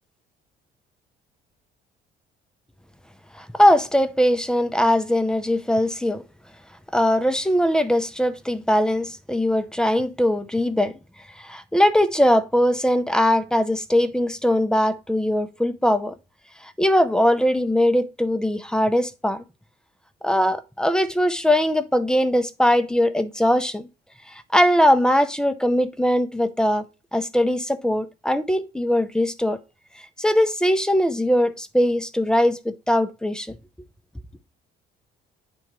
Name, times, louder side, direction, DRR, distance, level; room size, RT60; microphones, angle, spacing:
voice 1, 3.3-6.2 6.9-10.9 11.4-16.1 16.6-19.4 20.2-23.9 24.3-26.8 27.1-29.6 30.2-33.5, equal, 5° left, 0.6 m, -21 dB
9.3 x 3.5 x 3.0 m
cardioid pair, 110°, 17 cm